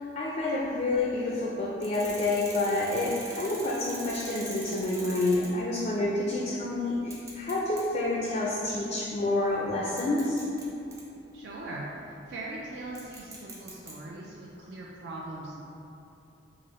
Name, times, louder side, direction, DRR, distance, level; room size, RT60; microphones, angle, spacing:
voice 1, 0.0-10.4, left 2 dB, 40° left, -3 dB, 0.3 m, -28 dB
sound 1, 0.6-1.0 1.8-5.7 6.0-6.1 6.9-7.9 8.4-8.6 9.5-9.6 10.0-11.0 12.9-13.9, right 2 dB, 15° right, 0.5 m, -43 dB
voice 2, 11.3-15.6, right 2 dB, 70° right, -4 dB, 0.4 m, -40 dB
4.8 x 2.0 x 3.0 m, 2.8 s
head